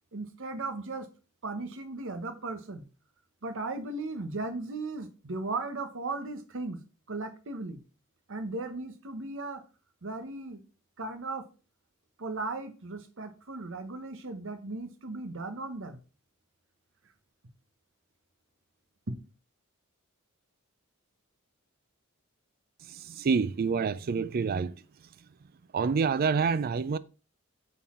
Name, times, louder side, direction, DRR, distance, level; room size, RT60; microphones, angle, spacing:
voice 1, 0.1-1.1 1.4-2.8 3.4-6.8 7.1-7.8 8.3-9.6 10.0-10.6 11.0-11.4 12.2-16.0 19.1-19.2, right 3 dB, 65° right, 1.0 m, -36 dB
voice 2, 22.9-24.8 25.7-27.0, right 5 dB, 45° right, 0.4 m, -27 dB
8.3 x 4.1 x 3.7 m
head